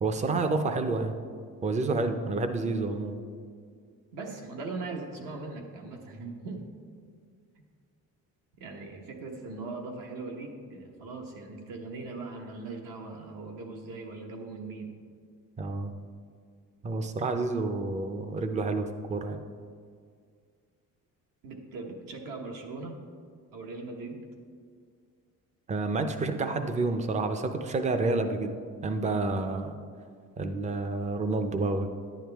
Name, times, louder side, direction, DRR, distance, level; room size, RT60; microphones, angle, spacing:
voice 1, 0.0-1.2 1.6-3.2 15.6-15.9 16.8-19.4 25.7-28.6 28.8-29.8 30.4-31.9, right 3 dB, 20° right, 8 dB, 0.5 m, -29 dB
voice 2, 4.1-6.6 8.6-15.0 21.4-23.0 23.5-24.2, right 3 dB, 70° right, 2 dB, 1.2 m, -40 dB
10.5 x 9.2 x 3.4 m, 2.1 s
cardioid pair, 170°, 34 cm